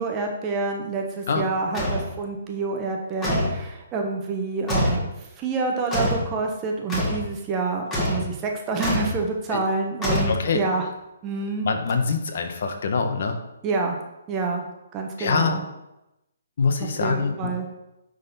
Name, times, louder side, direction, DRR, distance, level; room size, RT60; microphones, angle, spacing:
voice 1, 0.0-5.1 5.4-10.9 11.2-11.7 13.6-14.0 14.3-14.6 14.9-15.6 17.0-17.7, right 3 dB, 20° right, 2 dB, 1.0 m, -27 dB
sound 1, 1.7-2.1 3.2-3.6 4.7-5.1 5.9-6.3 6.9-7.2 7.9-8.3 8.8-9.2 10.0-10.7, left 1 dB, 15° left, 1.8 m, -24 dB
voice 2, 10.3-10.6 11.6-13.4 15.2-15.6 16.6-17.5, left 5 dB, 55° left, 5 dB, 1.1 m, -24 dB
9.6 x 4.0 x 4.2 m, 0.92 s
hypercardioid pair, 155°, 0 cm